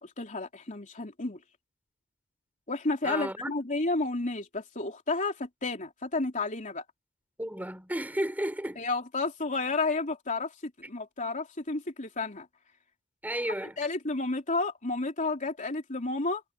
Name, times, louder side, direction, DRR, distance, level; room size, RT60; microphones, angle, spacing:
voice 1, 0.0-1.4 2.7-6.8 8.8-10.5 10.9-12.5 13.8-16.4, left 3 dB, 35° left, 3.5 m, -31 dB
voice 2, 3.0-3.5 7.4-8.8 13.2-13.8, right 1 dB, 5° right, 4.3 m, -33 dB
head